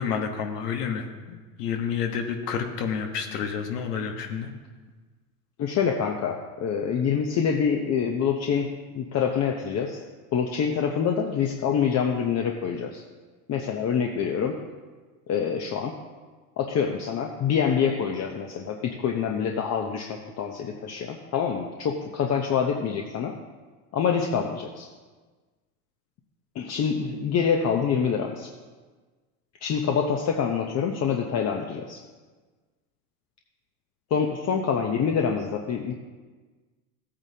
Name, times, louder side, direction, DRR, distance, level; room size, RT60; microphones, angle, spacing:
voice 1, 0.0-4.5, left 6 dB, 90° left, 4 dB, 1.4 m, -30 dB
voice 2, 5.6-8.7 8.9-10.0 10.3-13.0 13.5-14.6 15.3-16.0 16.6-23.3 23.9-24.9 26.5-28.5 29.6-32.0 34.1-35.9, left 7 dB, 35° left, 2 dB, 0.8 m, -26 dB
14.5 x 8.8 x 2.8 m, 1.4 s
supercardioid pair, 110°, 46 cm